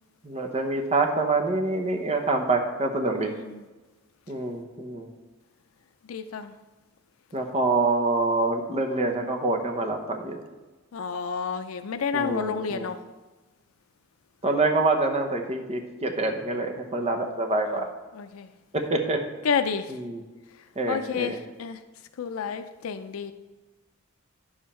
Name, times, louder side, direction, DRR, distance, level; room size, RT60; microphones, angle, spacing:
voice 1, 0.2-3.3 4.3-5.1 7.3-10.4 12.1-12.9 14.4-17.9 18.7-19.2 19.9-20.2 20.8-21.4, right 2 dB, 30° right, 4 dB, 0.9 m, -26 dB
voice 2, 3.2-3.6 6.1-6.5 10.9-13.0 18.1-18.5 19.4-19.9 20.9-21.8 22.2-23.3, left 6 dB, 85° left, 8 dB, 0.4 m, -30 dB
10.0 x 7.3 x 4.3 m, 1.2 s
head